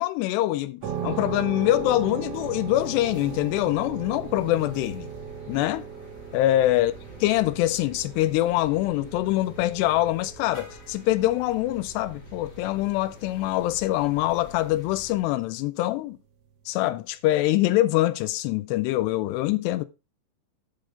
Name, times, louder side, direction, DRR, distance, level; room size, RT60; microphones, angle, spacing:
voice 1, 0.0-5.1 5.5-5.8 6.3-6.9 7.2-16.2 16.7-19.9, left 15 dB, 85° left, 2.4 m, -24 dB
sound 1, 0.8-15.2, left 1 dB, 30° left, 1.7 m, -48 dB
sound 2, 0.8-15.5, right 8 dB, 85° right, 4.2 m, -39 dB
11.0 x 5.3 x 3.7 m
omnidirectional pair, 5.3 m